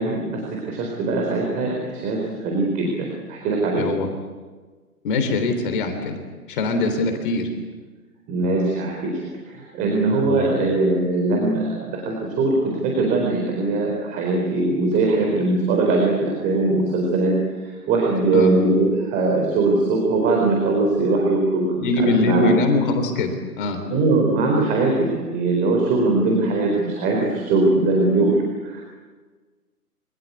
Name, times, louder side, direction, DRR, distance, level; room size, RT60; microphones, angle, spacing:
voice 1, 0.0-3.9 8.3-22.5 23.9-28.8, right 2 dB, 15° right, 0 dB, 4.2 m, -21 dB
voice 2, 3.7-4.1 5.0-6.2 6.5-7.5 10.2-10.7 18.3-18.5 21.8-23.9, left 3 dB, 35° left, 6 dB, 3.5 m, -22 dB
27.0 x 24.5 x 8.3 m, 1.4 s
hypercardioid pair, 155°, 47 cm